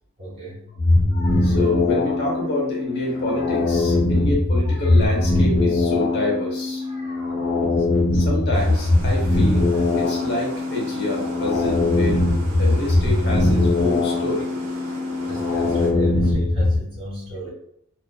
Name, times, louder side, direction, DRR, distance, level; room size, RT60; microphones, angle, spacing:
voice 1, 0.2-0.7 7.3-7.7 15.3-17.5, equal, 25° right, -6 dB, 1.3 m, -34 dB
sound 1, 0.8-16.8, left 2 dB, 70° left, 1.0 m, -21 dB
voice 2, 1.1-7.4 8.1-12.2 12.6-14.5, left 2 dB, 50° left, -2 dB, 0.7 m, -28 dB
sound 2, 8.5-15.9, right 1 dB, 70° right, 0.6 m, -37 dB
2.4 x 2.4 x 2.2 m, 0.71 s
head